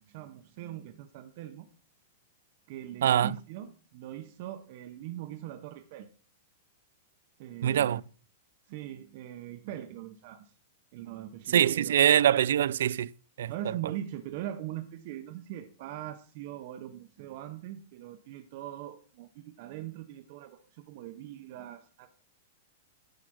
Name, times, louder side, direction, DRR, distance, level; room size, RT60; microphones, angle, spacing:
voice 1, 0.1-1.7 2.7-6.1 7.4-8.0 8.7-10.5 10.9-12.0 13.5-22.1, right 12 dB, 40° right, 0.7 m, -41 dB
voice 2, 3.0-3.3 7.6-8.0 11.5-13.1 13.4-13.5, right 10 dB, 75° right, 0.3 m, -23 dB
10.5 x 4.8 x 6.1 m
supercardioid pair, 175°, 0 cm